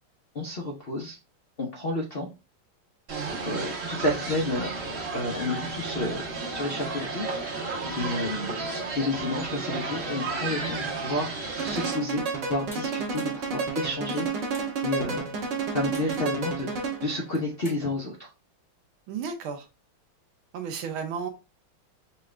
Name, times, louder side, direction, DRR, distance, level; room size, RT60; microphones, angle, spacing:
voice 1, 0.3-1.2 1.6-2.3 3.4-7.3 8.0-8.6 8.9-14.5 14.8-15.3 15.6-18.3, left 2 dB, 85° left, 0.5 m, -31 dB
sound 1, 3.1-11.9, right 3 dB, 35° right, 0.9 m, -33 dB
voice 2, 3.1-3.4 8.0-8.2 19.1-19.7 20.5-21.3, right 6 dB, 75° right, 1.6 m, -34 dB
sound 2, 11.6-17.2, right 4 dB, 60° right, 1.8 m, -31 dB
sound 3, 12.7-12.8 13.1-13.4 14.0-14.7 15.9-16.4 17.2-17.8, equal, 5° right, 0.5 m, -47 dB
5.7 x 2.5 x 3.2 m
omnidirectional pair, 2.4 m